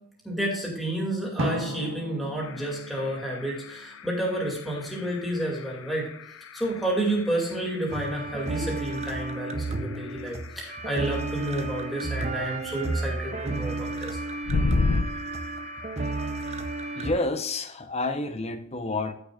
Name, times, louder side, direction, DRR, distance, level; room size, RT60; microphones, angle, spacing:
voice 1, 0.2-6.1 6.5-14.2, right 1 dB, ahead, -3 dB, 2.4 m, -30 dB
Drum, 1.4-4.1, right 1 dB, 65° right, 1.5 m, -34 dB
sound 1, 2.4-17.3, left 3 dB, 65° left, 0.6 m, -36 dB
sound 2, 7.9-17.1, right 3 dB, 30° right, 0.7 m, -32 dB
voice 2, 17.0-19.1, left 2 dB, 30° left, 8 dB, 0.8 m, -29 dB
14.0 x 6.9 x 2.4 m, 0.71 s
head